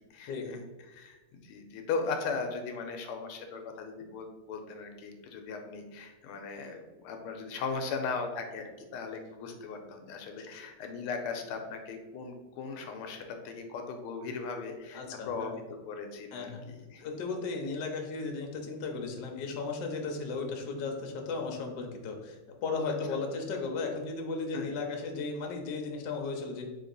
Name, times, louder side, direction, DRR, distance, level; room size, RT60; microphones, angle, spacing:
voice 1, 0.0-17.1 24.5-24.7, left 4 dB, 85° left, 5 dB, 1.5 m, -38 dB
voice 2, 14.9-15.5 16.3-16.6 17.0-26.6, left 4 dB, 65° left, 2 dB, 1.2 m, -35 dB
4.3 x 2.9 x 3.9 m, 1.2 s
omnidirectional pair, 2.4 m